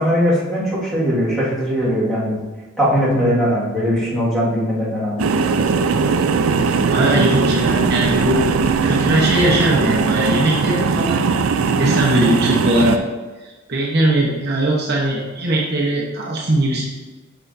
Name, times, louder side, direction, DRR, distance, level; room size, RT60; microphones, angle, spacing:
voice 1, 0.0-2.4 2.8-5.2, equal, ahead, -9 dB, 1.9 m, -19 dB
sound 1, 5.2-13.0, right 4 dB, 85° right, 0.4 m, -19 dB
voice 2, 6.9-8.5 8.8-13.0 13.4-16.8, right 1 dB, 50° right, -4 dB, 1.0 m, -20 dB
6.3 x 5.7 x 2.7 m, 1.2 s
head